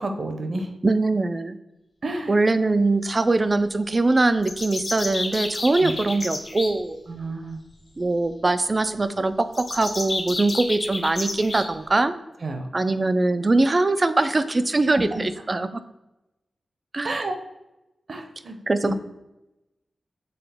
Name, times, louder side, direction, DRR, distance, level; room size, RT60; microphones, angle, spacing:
voice 1, 0.0-0.7 2.0-2.3 5.8-5.9 7.1-7.6 12.4-12.7 14.9-15.2 17.0-17.3 18.1-18.6 18.8-18.9, right 2 dB, 45° right, 5 dB, 0.7 m, -30 dB
voice 2, 0.8-1.6 2.3-7.0 8.0-12.1 12.7-15.8 16.9-17.1 18.7-18.9, right 2 dB, 25° right, 11 dB, 0.3 m, -22 dB
sound 1, 4.4-6.7 9.5-11.7, left 2 dB, 40° left, 1.0 m, -30 dB
6.9 x 4.0 x 3.4 m, 0.96 s
wide cardioid pair, 175°, 0 cm